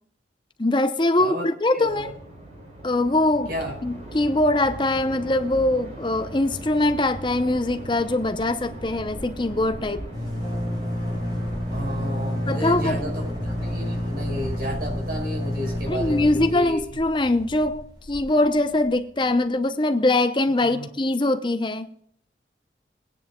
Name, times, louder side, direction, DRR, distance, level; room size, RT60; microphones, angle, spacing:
voice 1, 0.6-2.1 2.8-3.5 3.8-10.1 12.5-13.1 15.9-21.9, left 2 dB, 25° left, 0.7 m, -22 dB
voice 2, 1.2-1.5 1.7-2.1 3.5-3.7 11.7-16.8 20.6-20.9, equal, 55° right, 5.1 m, -32 dB
sound 1, 1.8-14.4, right 1 dB, 40° right, 3.9 m, -39 dB
sound 2, 7.9-8.0 8.2-18.9, left 1 dB, 25° right, 2.5 m, -30 dB
21.5 x 9.8 x 2.3 m
head